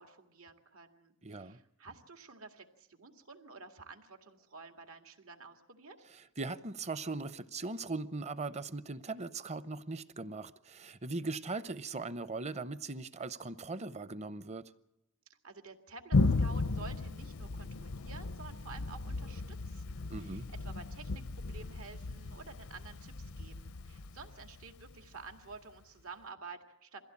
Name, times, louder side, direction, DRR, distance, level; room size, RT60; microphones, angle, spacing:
voice 1, 0.0-6.0 15.4-27.0, right 4 dB, 80° right, 2.2 m, -51 dB
voice 2, 1.2-1.6 6.1-14.7 20.1-20.5, right 3 dB, 30° right, 0.7 m, -39 dB
Thunder, 16.1-25.5, left 3 dB, 90° left, 0.7 m, -35 dB
22.0 x 16.0 x 8.5 m
head